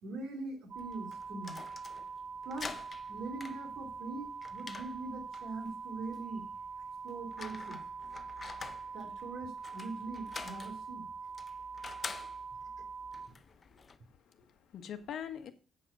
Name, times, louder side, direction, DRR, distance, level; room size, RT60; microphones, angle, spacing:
voice 1, 0.0-1.6 2.4-2.7 3.1-6.4 7.0-7.8 8.9-11.1, right 3 dB, 90° right, 5 dB, 2.7 m, -42 dB
sound 1, 0.7-13.3, right 5 dB, 65° right, 1.5 m, -44 dB
sound 2, 0.8-14.0, left 5 dB, 25° left, 0.5 m, -49 dB
voice 2, 14.3-15.5, left 9 dB, 60° left, 7 dB, 1.5 m, -44 dB
8.6 x 8.1 x 5.6 m, 0.35 s
cardioid pair, 165°, 0 cm